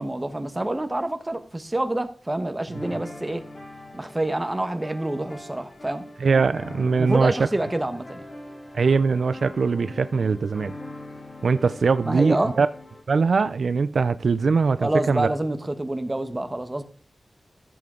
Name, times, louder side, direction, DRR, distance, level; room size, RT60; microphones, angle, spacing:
voice 1, 0.0-3.4 3.9-6.0 7.0-8.2 12.0-12.5 14.8-16.8, right 1 dB, 20° right, 1.1 m, -27 dB
sound 1, 2.7-13.0, left 1 dB, 85° left, 6.3 m, -41 dB
voice 2, 6.2-7.5 8.7-10.7 11.4-12.7 13.1-15.3, right 4 dB, 85° right, 0.4 m, -21 dB
14.0 x 7.7 x 3.8 m
wide cardioid pair, 105°, 0 cm